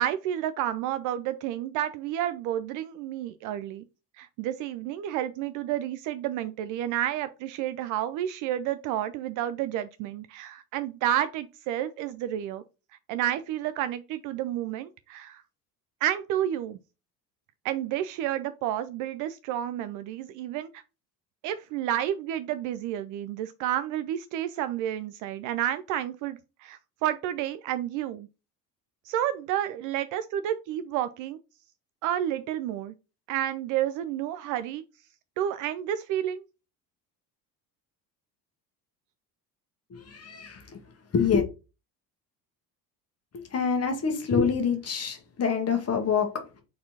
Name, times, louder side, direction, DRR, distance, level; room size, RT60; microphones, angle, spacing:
voice 1, 0.0-3.8 4.2-12.6 13.1-15.4 16.0-16.8 17.6-20.8 21.4-28.3 29.0-31.4 32.0-32.9 33.3-34.8 35.4-36.4, right 11 dB, 40° right, 0.4 m, -30 dB
voice 2, 39.9-40.8 41.1-41.4 43.3-46.5, left 6 dB, 30° left, 1.4 m, -26 dB
4.2 x 4.1 x 2.8 m
figure-of-eight pair, 60°, 50 cm